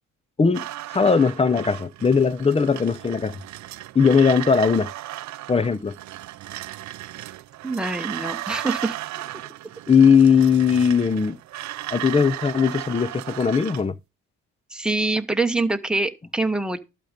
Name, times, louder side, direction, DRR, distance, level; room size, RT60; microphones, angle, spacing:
sound 1, 0.5-13.9, right 15 dB, 65° right, 0.5 m, -35 dB
voice 1, 0.9-3.4 3.9-4.9 5.5-6.0 9.9-11.4 11.9-13.9, left 6 dB, 20° left, 0.6 m, -19 dB
voice 2, 7.6-8.9 14.7-16.8, right 2 dB, 5° right, 1.1 m, -25 dB
12.0 x 5.2 x 5.1 m
cardioid pair, 90°, 30 cm